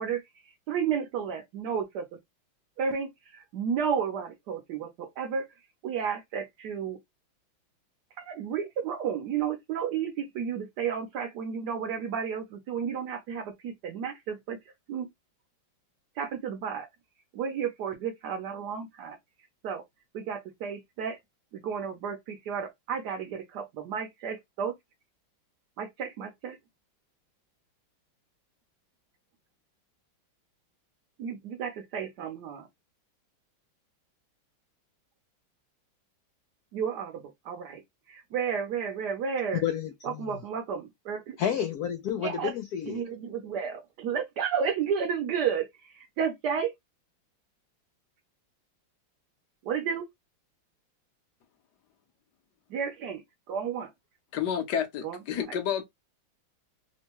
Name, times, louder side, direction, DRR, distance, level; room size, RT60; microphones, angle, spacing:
voice 1, 0.0-2.1 2.8-5.5 5.8-7.0 8.2-14.6 14.9-15.1 16.2-16.9 17.3-19.2 19.6-19.8 20.1-21.2 21.5-24.7 25.8-26.6 31.2-32.7 36.7-37.8 38.1-39.6 40.0-41.4 42.1-42.5 42.9-46.7 49.6-50.0 52.7-53.2 53.5-53.9 55.0-55.2 55.5-55.6, right 7 dB, 65° right, 1.1 m, -32 dB
voice 2, 39.6-40.4 41.4-43.0, left 9 dB, 80° left, 0.8 m, -31 dB
voice 3, 54.3-55.8, left 8 dB, 65° left, 1.2 m, -30 dB
3.5 x 2.2 x 2.9 m
omnidirectional pair, 2.2 m